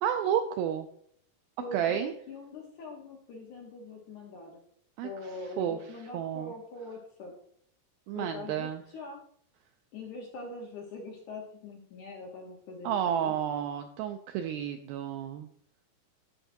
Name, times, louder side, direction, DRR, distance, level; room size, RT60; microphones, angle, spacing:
voice 1, 0.0-0.9 1.7-2.1 5.0-5.1 5.6-5.8 6.1-6.5 8.1-8.8 12.8-15.5, right 9 dB, 85° right, 6 dB, 2.1 m, -31 dB
voice 2, 1.6-4.6 5.0-7.3 8.1-9.2 9.9-13.3, left 2 dB, 65° left, 0 dB, 2.0 m, -43 dB
14.5 x 5.7 x 2.7 m, 0.64 s
omnidirectional pair, 4.8 m